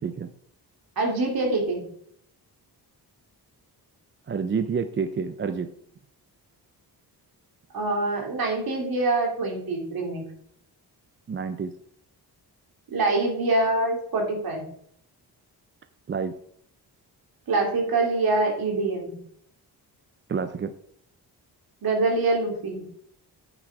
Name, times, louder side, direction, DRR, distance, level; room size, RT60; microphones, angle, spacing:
voice 1, 1.0-1.8 7.7-10.2 12.9-14.6 17.5-19.2 21.8-22.8, right 2 dB, 60° right, 0 dB, 2.9 m, -25 dB
voice 2, 4.3-5.7 11.3-11.7 16.1-16.3 20.3-20.7, right 5 dB, 30° right, 10 dB, 0.4 m, -28 dB
8.9 x 6.0 x 4.7 m, 0.66 s
wide cardioid pair, 140°, 40 cm